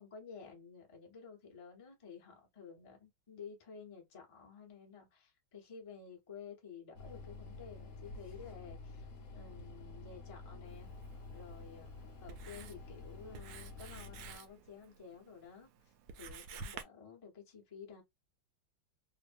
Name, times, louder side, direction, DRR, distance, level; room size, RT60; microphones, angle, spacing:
voice 1, 0.0-10.9 11.3-11.9 12.2-18.0, left 6 dB, 50° left, 0.4 m, -52 dB
sound 1, 6.9-14.4, left 3 dB, 65° left, 0.9 m, -50 dB
Writing, 10.7-16.8, right 5 dB, 75° right, 0.9 m, -52 dB
3.1 x 2.1 x 2.5 m
omnidirectional pair, 2.1 m